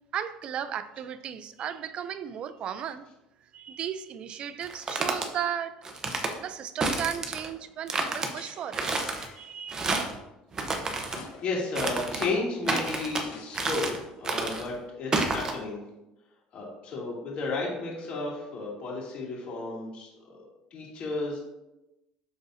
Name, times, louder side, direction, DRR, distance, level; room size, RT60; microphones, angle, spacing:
voice 1, 0.1-3.0 3.5-5.8 6.4-8.9 9.4-10.1, right 9 dB, 45° right, 0.4 m, -35 dB
sound 1, 4.6-5.3 5.8-6.3 6.8-7.5 7.9-8.3 8.7-9.3 9.7-10.2 10.5-11.2 11.8-12.3 12.7-13.2 13.5-14.0 14.2-14.7 15.1-15.5, right 3 dB, 25° right, 0.9 m, -29 dB
sound 2, 8.4-9.6 11.1-11.8 12.2-12.3 13.2-14.1, left 5 dB, 90° left, 1.2 m, -49 dB
voice 2, 11.4-13.9 14.2-15.8 16.5-20.4 20.7-21.4, left 3 dB, 55° left, 2.5 m, -33 dB
12.0 x 4.0 x 2.7 m
cardioid pair, 120°, 2 cm